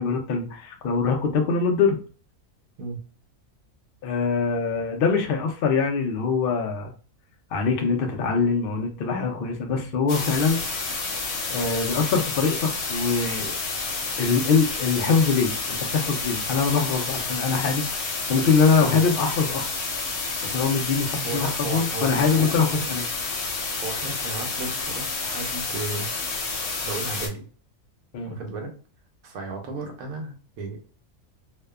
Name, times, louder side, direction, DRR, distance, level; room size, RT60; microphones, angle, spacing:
voice 1, 0.0-2.0 4.0-6.9 7.5-10.6 11.5-13.5 14.2-17.8 18.3-19.6 20.4-23.0 28.1-28.4, left 5 dB, 80° left, 3 dB, 0.4 m, -23 dB
sound 1, 10.1-27.3, left 3 dB, 55° left, 0.8 m, -30 dB
voice 2, 21.2-22.9 23.8-26.1 26.8-27.5 28.3-28.7 29.2-30.8, right 3 dB, 75° right, 3 dB, 1.1 m, -34 dB
2.6 x 2.2 x 2.3 m, 0.39 s
omnidirectional pair, 1.6 m